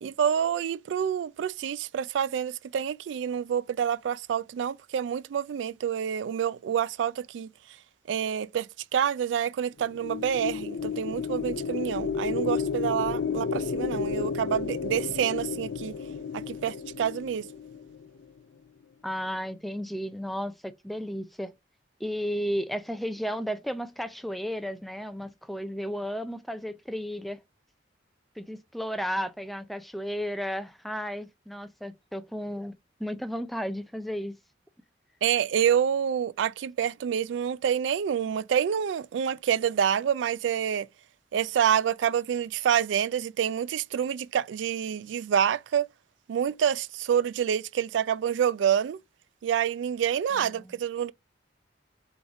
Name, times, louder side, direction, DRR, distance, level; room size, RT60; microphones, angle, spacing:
voice 1, 0.0-7.5 8.1-8.7 8.9-15.9 16.3-17.5 35.2-40.9 41.3-45.9 46.3-49.0 49.4-51.1, right 8 dB, 80° right, 0.3 m, -27 dB
sound 1, 9.8-18.2, left 5 dB, 75° left, 0.5 m, -32 dB
voice 2, 19.0-21.5 22.0-27.4 28.4-32.7 33.0-34.4 50.3-50.8, equal, ahead, 0.3 m, -33 dB
3.8 x 3.5 x 3.4 m
head